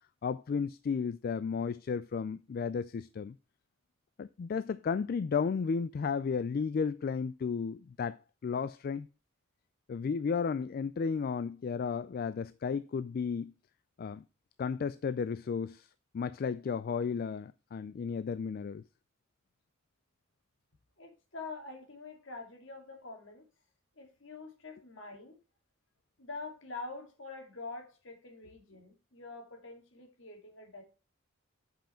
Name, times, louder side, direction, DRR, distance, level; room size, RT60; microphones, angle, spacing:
voice 1, 0.2-3.4 4.2-9.1 9.9-13.5 14.0-14.2 14.6-15.9 16.1-18.8, left 5 dB, 45° left, 0.3 m, -33 dB
voice 2, 21.0-23.5 24.0-25.4 26.2-30.8, left 3 dB, 65° left, 2.4 m, -45 dB
7.6 x 5.6 x 4.3 m
head